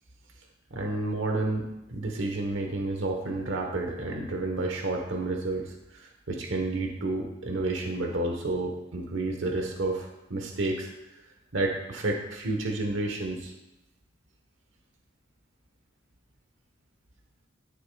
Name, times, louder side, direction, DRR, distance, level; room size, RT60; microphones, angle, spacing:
voice 1, 0.7-10.9 11.5-13.5, right 2 dB, 85° right, 2 dB, 1.1 m, -30 dB
11.0 x 6.8 x 2.3 m, 0.94 s
head